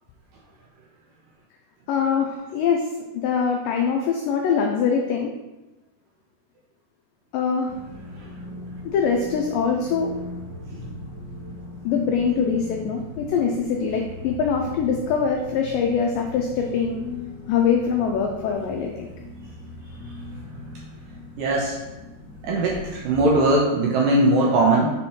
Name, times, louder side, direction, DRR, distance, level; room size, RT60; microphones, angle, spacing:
voice 1, 1.9-2.8 3.1-5.3 7.3-7.7 8.8-10.1 11.9-17.0 17.5-19.1, left 6 dB, 90° left, 2 dB, 1.9 m, -23 dB
sound 1, 7.7-23.3, left 2 dB, 25° left, 0.5 m, -39 dB
voice 2, 21.4-21.8 22.4-24.9, right 2 dB, 75° right, -3 dB, 2.1 m, -20 dB
6.4 x 4.3 x 4.3 m, 1.0 s
omnidirectional pair, 4.6 m